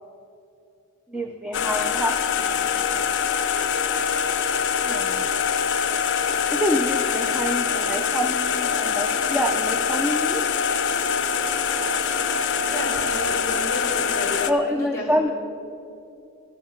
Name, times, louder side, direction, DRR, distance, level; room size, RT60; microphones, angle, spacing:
voice 1, 1.1-3.0 4.9-5.5 6.5-10.4 14.5-15.3, equal, 5° right, 3 dB, 0.4 m, -27 dB
sound 1, 1.5-14.5, left 7 dB, 55° left, 0.5 m, -24 dB
voice 2, 12.6-15.3, left 1 dB, 10° left, -1 dB, 2.6 m, -32 dB
14.0 x 7.1 x 5.7 m, 2.7 s
head